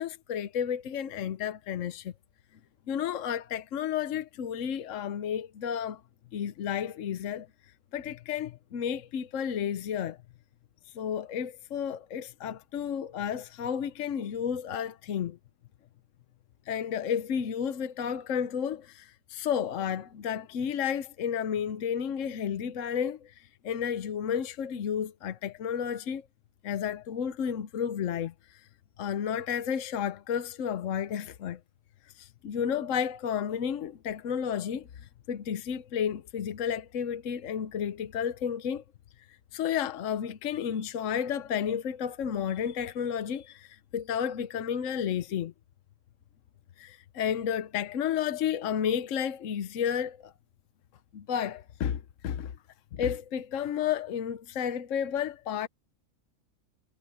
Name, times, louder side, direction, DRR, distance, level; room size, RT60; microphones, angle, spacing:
voice 1, 0.0-2.1 2.9-6.0 6.3-7.5 7.9-10.2 10.8-15.4 16.7-26.3 26.6-28.7 29.0-31.6 32.1-38.8 39.5-45.5 46.8-50.3 51.1-52.5 52.9-55.7, left 8 dB, 70° left, 1.2 m, -32 dB
omnidirectional pair, 1.4 m